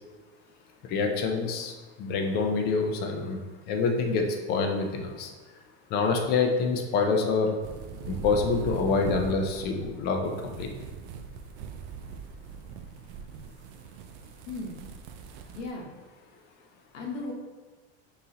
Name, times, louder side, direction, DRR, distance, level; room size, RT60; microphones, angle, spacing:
voice 1, 0.9-3.4 3.7-5.3 5.9-7.6 8.1-10.3 10.6-10.7, left 4 dB, 30° left, 3 dB, 0.4 m, -26 dB
sound 1, 7.6-15.7, right 6 dB, 65° right, 0.5 m, -40 dB
voice 2, 14.5-14.9 15.6-15.9 16.9-17.3, left 3 dB, 75° left, -1 dB, 1.0 m, -36 dB
4.1 x 3.8 x 2.8 m, 1.4 s
supercardioid pair, 160°, 36 cm